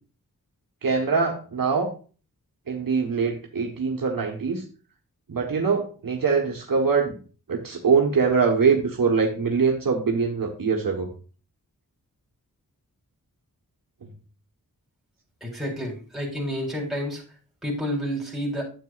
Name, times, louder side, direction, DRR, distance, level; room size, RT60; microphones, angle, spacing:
voice 1, 0.8-1.9 2.7-4.6 5.3-7.2 7.5-11.1 14.0-14.1, right 5 dB, 70° right, 1 dB, 1.3 m, -23 dB
voice 2, 15.4-17.2 17.6-18.6, equal, ahead, -2 dB, 3.5 m, -29 dB
9.4 x 8.2 x 2.4 m, 0.37 s
wide cardioid pair, 65°, 35 cm